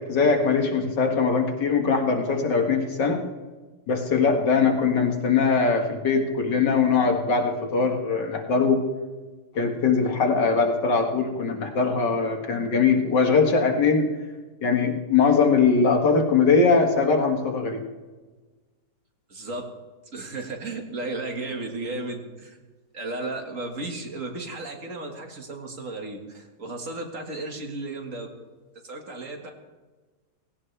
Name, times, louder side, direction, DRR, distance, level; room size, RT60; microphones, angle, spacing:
voice 1, 0.1-3.2 3.9-8.8 9.5-14.1 14.6-17.8, left 5 dB, 85° left, 3 dB, 2.4 m, -21 dB
voice 2, 19.3-19.6 20.1-22.6 22.9-28.3 28.8-29.5, right 2 dB, 50° right, 2 dB, 2.1 m, -34 dB
18.0 x 17.0 x 3.4 m, 1.3 s
omnidirectional pair, 1.8 m